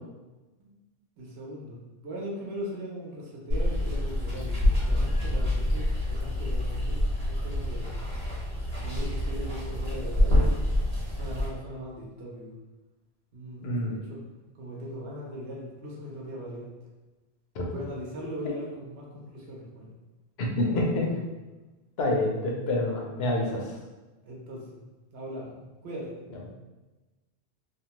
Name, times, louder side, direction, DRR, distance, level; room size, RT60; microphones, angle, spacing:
voice 1, 1.2-7.0 7.3-8.0 8.8-10.7 11.0-12.5 13.3-14.2 14.5-16.7 17.6-19.9 20.7-21.2 24.2-24.8 25.1-25.5 25.8-26.1, equal, 75° right, -3 dB, 1.0 m, -39 dB
Water, 3.5-11.5, left 1 dB, 30° right, 1.0 m, -27 dB
voice 2, 13.6-14.0 17.5-17.7 20.4-21.1 22.0-23.8, left 1 dB, 75° left, -1 dB, 0.8 m, -27 dB
2.7 x 2.1 x 2.9 m, 1.2 s
omnidirectional pair, 1.1 m